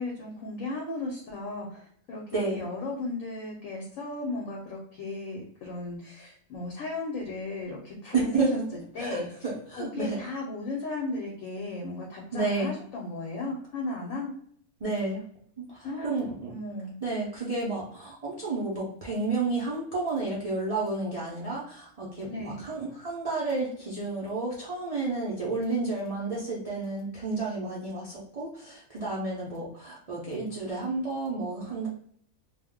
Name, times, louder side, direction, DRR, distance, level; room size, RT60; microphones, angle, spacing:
voice 1, 0.0-8.6 8.9-9.3 9.7-14.3 15.8-17.0 22.2-22.6, left 2 dB, 65° left, -1 dB, 1.0 m, -35 dB
voice 2, 2.3-2.6 8.1-8.7 9.0-10.2 12.3-12.7 14.8-15.2 15.6-16.5 17.0-31.9, right 3 dB, 65° right, -7 dB, 0.3 m, -31 dB
2.4 x 2.1 x 3.5 m, 0.62 s
omnidirectional pair, 1.6 m